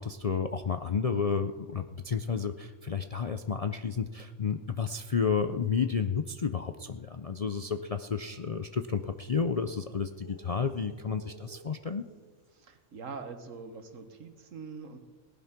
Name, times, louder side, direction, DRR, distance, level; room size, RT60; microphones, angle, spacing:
voice 1, 0.0-12.1, left 6 dB, 50° left, 8 dB, 0.4 m, -31 dB
sound 1, 8.4-12.7, right 1 dB, 25° left, 6.8 m, -56 dB
voice 2, 12.5-15.0, right 5 dB, 80° right, 8 dB, 1.7 m, -43 dB
18.0 x 11.0 x 5.9 m, 1.4 s
omnidirectional pair, 1.3 m